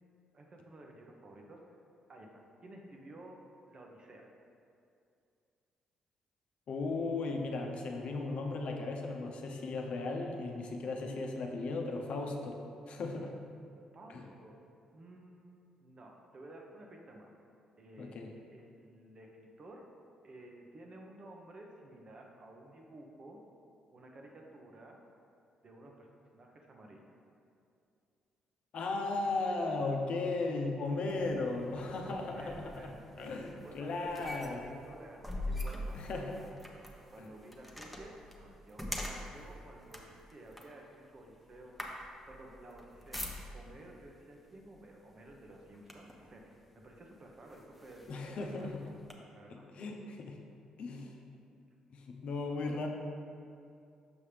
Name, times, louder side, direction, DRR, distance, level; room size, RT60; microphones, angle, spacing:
voice 1, 0.3-1.8 2.1-3.4 3.7-4.3 13.9-14.6 14.9-17.3 17.8-19.9 20.2-23.4 23.9-25.0 25.6-26.1 26.3-27.2 32.0-33.3 33.6-41.8 42.3-43.2 43.5-49.0 49.3-49.7, right 1 dB, 45° right, 1 dB, 1.0 m, -53 dB
voice 2, 6.7-13.4 14.1-14.2 18.0-18.3 28.7-32.9 33.2-34.6 35.9-36.3 48.1-48.7 49.8-50.4 50.8-51.1 51.9-52.9, left 3 dB, 65° left, 1 dB, 0.8 m, -36 dB
sound 1, 31.0-43.8 44.7-44.9 45.3-46.3 46.9-47.0 47.5-49.1, left 1 dB, ahead, 1.0 m, -44 dB
7.1 x 5.5 x 3.4 m, 2.5 s
supercardioid pair, 60°, 2 cm